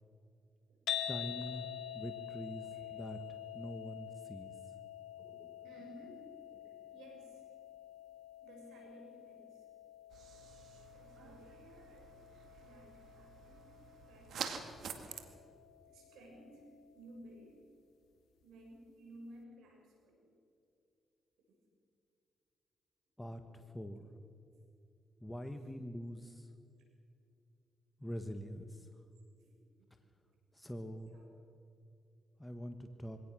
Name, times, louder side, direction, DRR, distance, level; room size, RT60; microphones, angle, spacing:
sound 1, 0.9-17.1, left 11 dB, 80° left, 1.3 m, -47 dB
voice 1, 1.1-1.6 1.9-3.2 3.5-4.5 23.2-23.4 23.7-24.1 25.2-26.5 28.0-28.9 30.5-31.1 32.4-33.2, equal, 10° left, 6 dB, 1.5 m, -44 dB
voice 2, 5.6-6.2 6.6-7.4 8.4-9.6 10.9-11.6 12.6-13.7 14.0-14.7 15.9-16.7 16.9-17.6 18.4-20.3 29.4-29.5 31.1-31.3, right 1 dB, 85° right, 0 dB, 6.5 m, -56 dB
sound 2, 10.1-15.2, right 7 dB, 70° right, 2.1 m, -47 dB
23.0 x 18.0 x 6.3 m, 2.6 s
cardioid pair, 70°, 0 cm